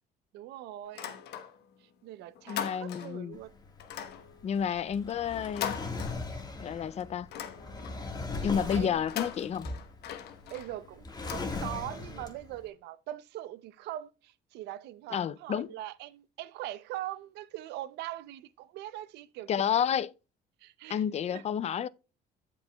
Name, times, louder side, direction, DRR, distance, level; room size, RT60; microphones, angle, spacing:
voice 1, 0.3-1.1 2.0-3.5 8.8-9.0 10.5-11.0 11.3-19.5 20.6-21.0 21.3-21.4, right 14 dB, 85° right, 0.6 m, -41 dB
sound 1, 0.9-1.8 2.1-3.3 3.8-6.6 7.0-8.1 8.9-12.0, left 9 dB, 75° left, 1.1 m, -41 dB
voice 2, 2.5-3.4 4.4-5.8 6.6-7.3 8.4-9.7 15.1-15.7 19.5-20.1 20.9-21.9, left 8 dB, 40° left, 0.4 m, -30 dB
Drawer open or close, 3.3-12.6, left 3 dB, 25° left, 1.6 m, -39 dB
15.0 x 5.3 x 2.3 m
cardioid pair, 110°, 17 cm